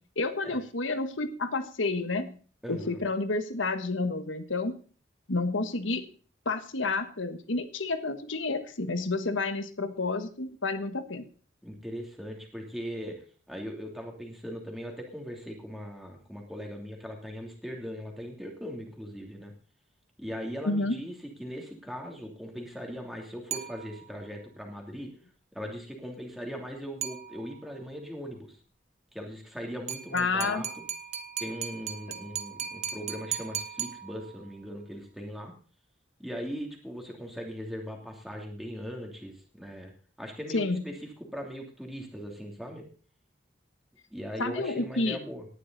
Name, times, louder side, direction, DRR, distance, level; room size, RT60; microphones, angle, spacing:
voice 1, 0.0-2.4 2.7-4.7 5.3-6.1 6.4-11.2 20.6-21.0 30.1-30.6 32.1-32.2 40.5-40.8 44.4-45.2, left 3 dB, 85° left, 9 dB, 1.4 m, -30 dB
voice 2, 2.6-3.0 11.6-13.2 13.5-19.5 20.2-21.1 21.4-25.1 25.5-28.6 29.1-30.7 31.4-35.5 36.2-39.9 40.2-40.9 41.3-42.8 44.1-45.5, equal, ahead, 0 dB, 3.0 m, -39 dB
sound 1, 23.5-24.3 27.0-27.8 29.9-34.6, right 9 dB, 35° right, 1.1 m, -38 dB
18.0 x 11.0 x 4.1 m, 0.40 s
head